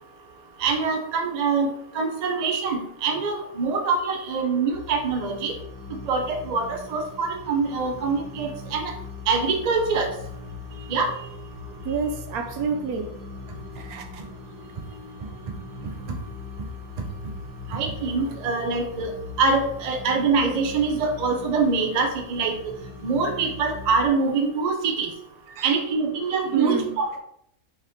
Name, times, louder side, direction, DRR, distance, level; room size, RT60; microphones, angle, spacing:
voice 1, 0.6-1.7 1.9-5.5 6.1-8.9 9.3-10.1 10.9-11.1 17.7-22.6 23.0-25.1 25.6-27.2, right 4 dB, 55° right, 5 dB, 0.4 m, -24 dB
sound 1, 4.7-24.1, left 3 dB, 75° left, 1.4 m, -40 dB
voice 2, 11.8-13.1 13.8-14.2 25.5-25.7 26.5-26.9, right 6 dB, 85° right, 5 dB, 1.2 m, -29 dB
4.6 x 3.0 x 3.5 m, 0.70 s
omnidirectional pair, 1.5 m